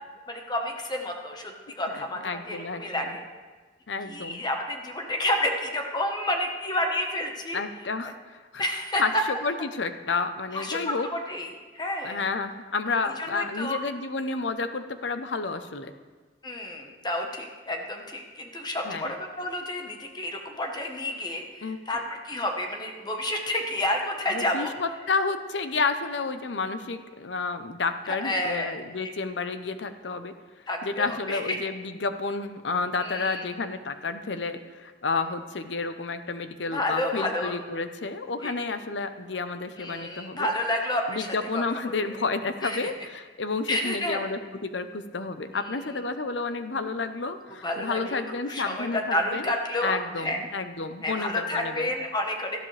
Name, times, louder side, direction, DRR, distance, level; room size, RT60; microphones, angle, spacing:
voice 1, 0.3-3.2 4.1-7.6 8.6-9.2 10.5-12.2 13.0-13.8 16.4-24.7 28.1-28.8 30.7-31.6 33.0-33.5 36.7-37.6 38.4-38.5 39.8-42.2 42.6-42.9 43.7-44.2 45.5-45.8 47.6-48.2 48.5-50.4 51.0-52.6, left 1 dB, 25° left, 2 dB, 1.2 m, -30 dB
voice 2, 1.9-3.0 3.9-4.4 7.5-8.6 9.0-9.1 9.4-11.1 12.0-15.9 18.8-19.1 21.6-21.8 24.3-30.3 30.8-40.5 41.1-49.5 49.8-51.9, left 4 dB, 85° left, 9 dB, 0.8 m, -30 dB
18.0 x 13.0 x 3.3 m, 1.4 s
head